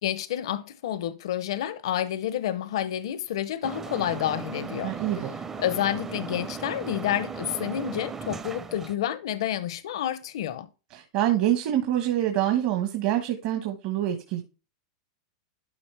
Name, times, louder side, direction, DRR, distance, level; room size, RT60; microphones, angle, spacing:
voice 1, 0.0-4.9 5.6-10.7, left 11 dB, 75° left, 0.7 m, -29 dB
sound 1, 3.6-9.0, right 6 dB, 15° right, 0.6 m, -37 dB
voice 2, 4.8-5.3 10.9-14.4, right 12 dB, 50° right, 1.5 m, -26 dB
12.0 x 4.8 x 3.4 m
supercardioid pair, 140°, 3 cm